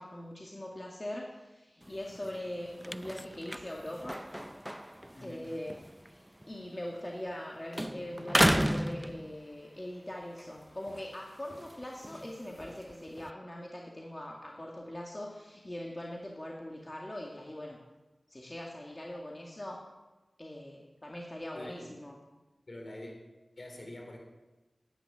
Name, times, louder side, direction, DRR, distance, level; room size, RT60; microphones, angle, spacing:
voice 1, 0.0-4.2 5.2-17.8 18.3-19.8 20.4-22.1, left 1 dB, 25° left, -1 dB, 2.2 m, -42 dB
sound 1, 1.8-7.5 7.7-9.8 10.2-13.3, equal, 5° right, 0.4 m, -34 dB
voice 2, 5.1-5.5 21.5-22.0 22.7-23.2 23.6-24.2, left 1 dB, 50° left, 2 dB, 4.2 m, -45 dB
11.0 x 10.0 x 9.8 m, 1.1 s
wide cardioid pair, 60°, 0 cm